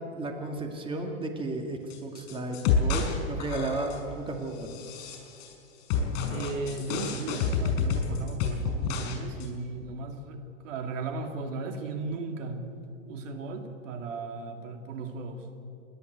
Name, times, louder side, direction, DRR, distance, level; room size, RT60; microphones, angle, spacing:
voice 1, 0.1-4.8, right 2 dB, 15° right, 3 dB, 2.2 m, -34 dB
sound 1, 1.9-3.1 3.4-4.1 4.6-5.5 5.9-9.1 9.4-9.5, left 5 dB, 50° left, 5.8 m, -29 dB
voice 2, 6.3-12.6 13.1-15.5, right 3 dB, 65° right, 5 dB, 2.6 m, -36 dB
28.5 x 11.5 x 8.1 m, 2.6 s
hypercardioid pair, 120°, 40 cm